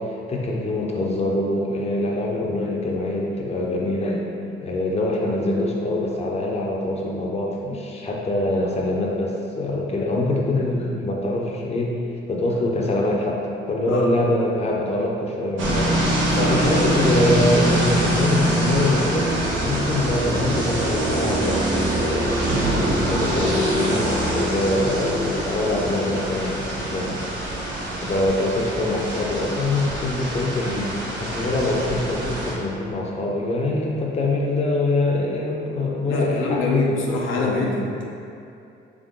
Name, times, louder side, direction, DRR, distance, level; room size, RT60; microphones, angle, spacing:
voice 1, 0.0-4.3 4.6-11.9 12.3-13.4 13.7-16.0 16.5-19.3 19.6-22.4 23.0-27.2 28.0-37.7, left 2 dB, 30° left, -2 dB, 0.7 m, -24 dB
sound 1, 15.6-32.5, right 1 dB, 75° right, 1.0 m, -24 dB
voice 2, 36.1-38.0, left 2 dB, 80° left, -3 dB, 0.6 m, -25 dB
3.7 x 3.3 x 3.6 m, 2.6 s
cardioid pair, 90°, 20 cm